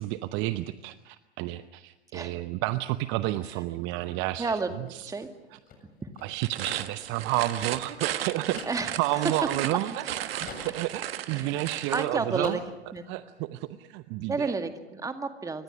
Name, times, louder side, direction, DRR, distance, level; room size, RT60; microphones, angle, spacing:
voice 1, 0.0-5.1 5.5-5.6 6.2-8.7 9.0-12.6 13.1-14.6, right 16 dB, 35° right, 13 dB, 0.9 m, -31 dB
voice 2, 4.4-5.3 6.0-6.1 8.6-9.0 11.3-12.6 12.9-13.1 14.3-15.6, right 4 dB, 10° right, 7 dB, 2.0 m, -31 dB
sound 1, 4.8-10.1 10.4-12.1 12.3-13.0, left 5 dB, 25° left, 7.6 m, -47 dB
sound 2, 6.3-12.1, right 11 dB, 60° right, 1.5 m, -35 dB
28.5 x 25.0 x 6.4 m, 1.0 s
figure-of-eight pair, 100°, 33 cm